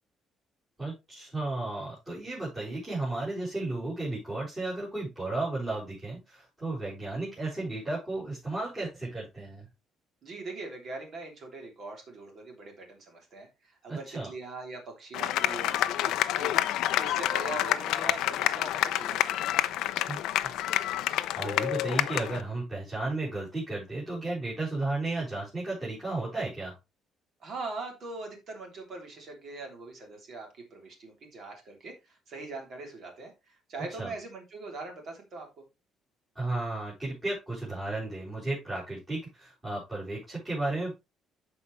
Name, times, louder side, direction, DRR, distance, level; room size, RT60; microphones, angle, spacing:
voice 1, 0.8-9.6 13.9-14.3 20.1-20.5 21.0-26.7 34.0-34.1 36.3-41.0, right 2 dB, 15° right, -9 dB, 4.7 m, -34 dB
voice 2, 10.2-19.4 27.4-35.5, right 3 dB, 40° right, 2 dB, 3.2 m, -42 dB
sound 1, 15.1-22.4, left 13 dB, 85° left, 0.6 m, -28 dB
13.5 x 5.0 x 3.2 m, 0.25 s
cardioid pair, 180°, 0 cm